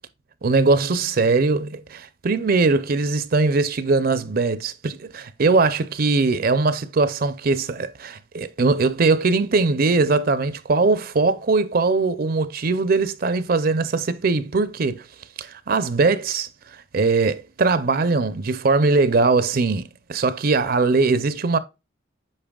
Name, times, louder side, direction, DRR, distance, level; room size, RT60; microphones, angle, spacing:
voice 1, 0.4-15.1 15.4-16.5 16.9-21.6, right 3 dB, 50° right, 0.6 m, -21 dB
8.7 x 5.4 x 2.3 m
head